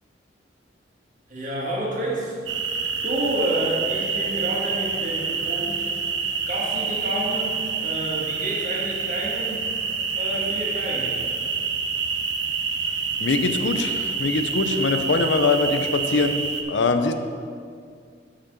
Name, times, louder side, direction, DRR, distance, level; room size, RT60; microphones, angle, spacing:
voice 1, 1.3-2.7 3.0-5.9 6.5-9.6 10.1-11.2, right 1 dB, 45° right, -5 dB, 2.1 m, -29 dB
sound 1, 2.5-16.6, right 5 dB, 90° right, 0.8 m, -27 dB
voice 2, 13.2-17.1, left 3 dB, 75° left, 7 dB, 0.6 m, -23 dB
6.5 x 5.9 x 7.1 m, 2.2 s
head